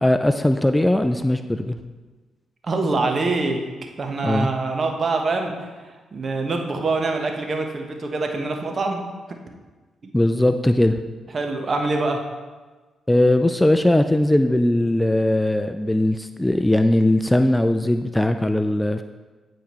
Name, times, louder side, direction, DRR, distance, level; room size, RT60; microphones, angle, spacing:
voice 1, 0.0-1.8 4.2-4.5 10.1-11.0 13.1-19.0, left 1 dB, 10° left, 8 dB, 0.4 m, -19 dB
voice 2, 2.6-3.6 4.0-9.0 10.0-10.1 11.3-12.2, right 3 dB, 50° right, 3 dB, 1.0 m, -25 dB
9.2 x 4.9 x 3.0 m, 1.3 s
supercardioid pair, 50°, 0 cm